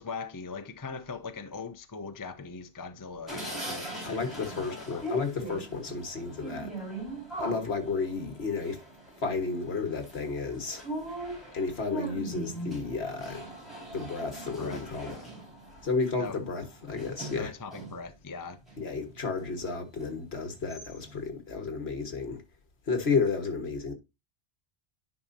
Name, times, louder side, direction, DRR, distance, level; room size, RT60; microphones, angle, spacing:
voice 1, 0.0-5.0 14.6-15.3 16.2-16.4 17.4-18.6, left 4 dB, 20° left, 0.6 m, -41 dB
sound 1, 3.3-18.1 18.5-19.5 20.0-20.1 20.4-21.2, right 1 dB, ahead, 4.6 m, -40 dB
voice 2, 4.1-6.7 7.4-8.8 9.2-10.8 11.5-13.4 13.9-15.2 15.8-17.5 18.8-22.4 22.9-23.9, left 4 dB, 65° left, 1.8 m, -32 dB
10.5 x 5.1 x 2.7 m
omnidirectional pair, 1.2 m